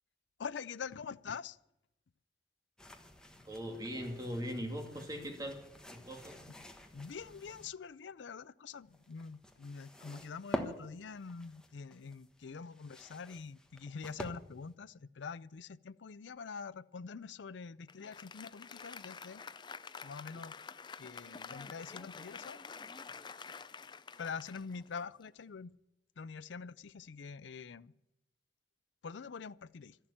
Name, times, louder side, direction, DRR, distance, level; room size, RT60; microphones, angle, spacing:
voice 1, 0.4-1.6 6.9-19.4 20.0-20.5 21.0-22.6 24.2-25.7 26.2-27.9 29.0-30.0, left 5 dB, 75° left, 0.5 m, -45 dB
sound 1, 2.8-7.7 8.7-14.7, equal, 5° left, 1.2 m, -47 dB
voice 2, 3.5-5.6 5.9-6.4, equal, 20° right, 2.6 m, -40 dB
Applause, 17.9-25.5, left 5 dB, 25° left, 0.5 m, -49 dB
13.0 x 11.5 x 8.8 m
head